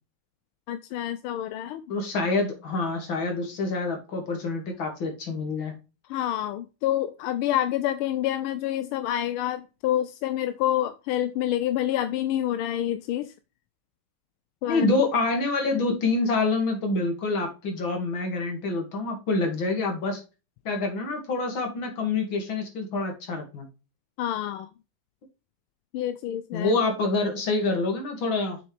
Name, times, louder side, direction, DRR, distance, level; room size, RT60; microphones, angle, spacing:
voice 1, 0.7-1.8 6.1-13.3 14.6-14.9 24.2-24.7 25.9-26.7, left 12 dB, 85° left, 11 dB, 1.5 m, -27 dB
voice 2, 1.9-5.8 14.6-20.2 20.6-23.7 26.5-28.6, left 3 dB, 65° left, 3 dB, 2.9 m, -26 dB
7.1 x 6.0 x 3.3 m, 0.29 s
omnidirectional pair, 2.3 m